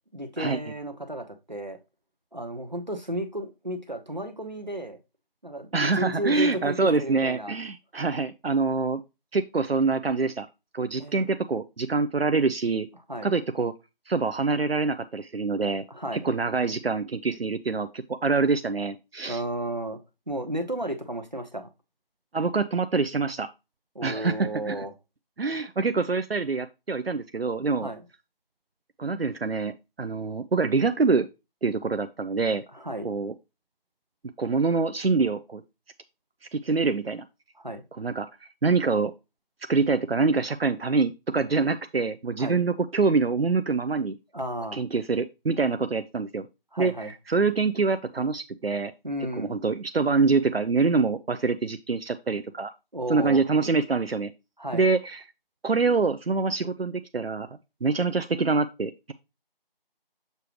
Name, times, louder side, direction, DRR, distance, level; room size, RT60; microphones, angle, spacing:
voice 1, 0.1-1.8 2.3-5.0 5.4-7.5 11.0-11.2 13.1-13.3 15.9-16.2 19.3-20.0 20.3-21.7 23.9-24.9 27.8-28.0 32.7-33.1 37.6-37.8 42.4-42.6 44.3-44.8 46.7-47.1 49.0-49.6 52.9-53.4 54.6-54.8, right 1 dB, 50° right, 6 dB, 1.1 m, -33 dB
voice 2, 5.7-9.0 9.3-10.5 10.7-12.9 13.2-13.7 14.1-15.8 16.1-19.4 22.3-23.5 24.0-24.9 25.4-27.9 29.0-31.3 31.6-32.6 33.0-33.3 34.4-35.6 36.5-37.2 38.0-39.1 39.7-44.2 44.7-46.5 46.8-48.9 49.4-52.7 53.1-54.3 54.7-55.2 55.6-57.5 57.8-59.1, right 4 dB, 80° right, 10 dB, 0.6 m, -25 dB
6.7 x 4.9 x 3.0 m, 0.25 s
figure-of-eight pair, 180°, 29 cm